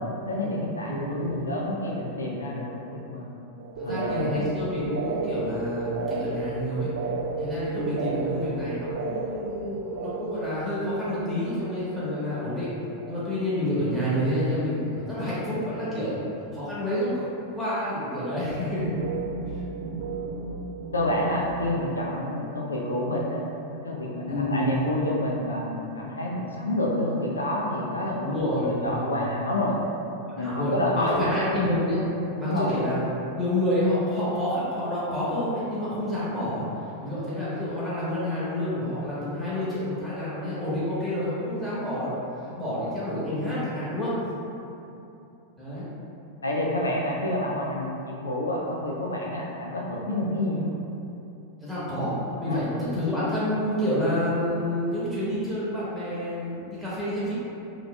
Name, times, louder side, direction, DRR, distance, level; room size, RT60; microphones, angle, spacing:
voice 1, 0.2-3.3 3.8-4.4 20.9-23.4 23.8-28.3 28.6-29.7 30.4-31.3 32.3-32.8 46.4-50.7 52.4-52.6, left 1 dB, 75° left, -2 dB, 0.3 m, -28 dB
voice 2, 0.8-1.5 3.8-6.9 7.4-12.7 13.1-16.2 16.5-18.9 19.5-19.6 24.3-24.7 28.2-29.1 30.4-32.0 32.4-33.1 33.3-36.6 37.0-42.1 42.5-44.1 45.6-45.9 51.6-52.1 52.4-57.3, left 1 dB, ahead, -11 dB, 1.2 m, -28 dB
sound 1, 3.6-12.5 12.8-13.5 13.8-14.5 14.8-15.2 18.5-21.7, right 4 dB, 55° right, 0.3 m, -34 dB
3.7 x 2.9 x 2.2 m, 2.8 s
figure-of-eight pair, 90°, 0 cm